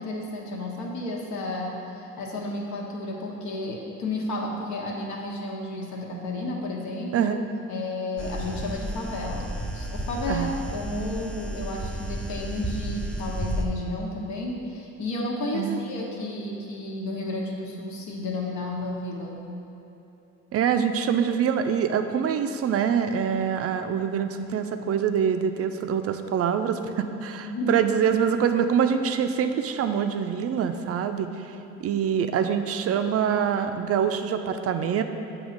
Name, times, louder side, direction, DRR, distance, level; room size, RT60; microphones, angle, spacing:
voice 1, 0.0-7.3 7.7-9.5 9.7-19.5 27.4-27.8, left 2 dB, 60° left, -1 dB, 1.2 m, -32 dB
sound 1, 8.2-13.6, right 1 dB, 5° left, 0.6 m, -32 dB
voice 2, 20.5-31.5 31.8-35.0, right 7 dB, 45° right, 8 dB, 0.5 m, -25 dB
8.0 x 3.0 x 5.1 m, 3.0 s
supercardioid pair, 80°, 32 cm